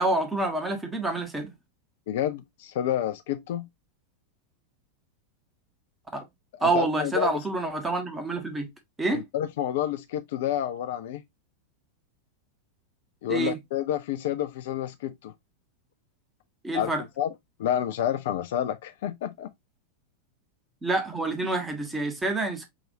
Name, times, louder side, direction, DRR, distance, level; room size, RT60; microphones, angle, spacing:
voice 1, 0.0-1.5 6.1-6.3 6.6-8.7 9.0-9.2 13.3-13.6 16.6-17.0 20.8-22.7, right 2 dB, 10° right, 1.2 m, -27 dB
voice 2, 2.1-3.7 6.5-7.3 9.1-11.2 13.2-15.3 16.7-16.9 17.2-17.3 17.6-19.5, left 10 dB, 55° left, 0.4 m, -29 dB
6.0 x 2.6 x 2.6 m
figure-of-eight pair, 90°, 0 cm